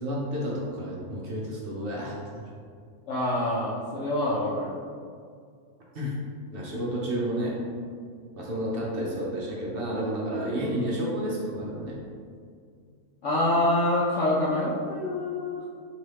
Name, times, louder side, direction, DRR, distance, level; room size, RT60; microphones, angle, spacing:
voice 1, 0.0-2.4 5.9-6.1 6.5-7.6 8.4-12.0, equal, 50° right, -4 dB, 0.7 m, -31 dB
voice 2, 3.1-4.7 13.2-15.6, left 1 dB, 60° left, -7 dB, 0.9 m, -26 dB
4.2 x 3.0 x 3.3 m, 2.2 s
omnidirectional pair, 1.6 m